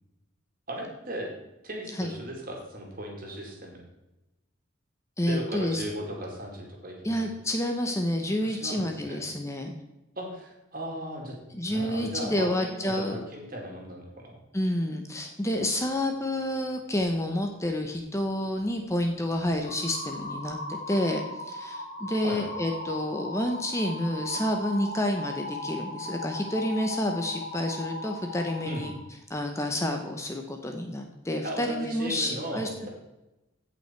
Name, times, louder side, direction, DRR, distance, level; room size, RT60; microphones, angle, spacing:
voice 1, 0.7-1.3 1.6-3.8 5.3-7.2 8.4-9.2 10.2-11.4 11.7-14.4 22.2-22.4 28.6-28.8 31.4-32.9, right 1 dB, 45° right, 0 dB, 2.5 m, -37 dB
voice 2, 5.2-5.8 7.0-9.7 11.5-13.2 14.5-28.9 29.3-32.9, left 1 dB, 15° left, 4 dB, 0.7 m, -29 dB
sound 1, 19.6-28.9, left 1 dB, 40° left, 3.3 m, -38 dB
15.5 x 5.7 x 4.5 m, 0.98 s
head